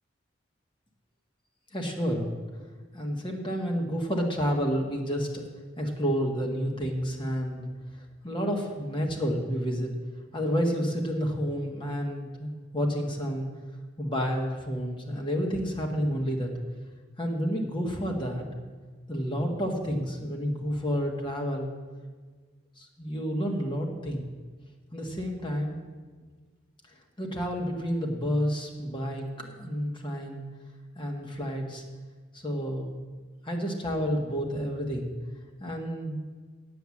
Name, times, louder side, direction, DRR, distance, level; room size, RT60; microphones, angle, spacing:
voice 1, 1.7-2.3 2.9-5.4 5.8-7.6 8.2-9.9 10.3-13.5 14.0-16.5 17.2-18.4 19.1-21.7 22.8-24.3 24.9-25.8 27.2-30.4 30.9-31.8 32.4-32.9 33.4-35.1 35.6-36.2, equal, 25° left, 1 dB, 1.5 m, -30 dB
9.1 x 8.1 x 7.2 m, 1.5 s
head